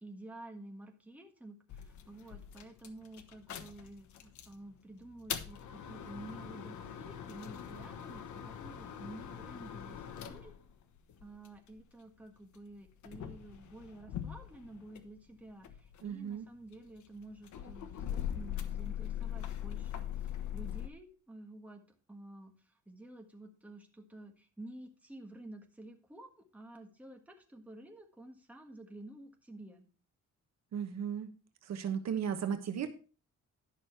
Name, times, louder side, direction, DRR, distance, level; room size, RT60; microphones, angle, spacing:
voice 1, 0.0-10.5 11.2-21.8 22.1-29.8, right 1 dB, 5° right, 2 dB, 1.5 m, -51 dB
sound 1, 1.7-4.6 5.0-11.8 12.5-15.2 15.5-20.9, left 10 dB, 75° left, 1.2 m, -42 dB
voice 2, 16.0-16.4 30.7-31.3 31.6-32.9, right 8 dB, 65° right, 8 dB, 1.1 m, -35 dB
11.0 x 6.1 x 4.5 m, 0.37 s
cardioid pair, 150°, 30 cm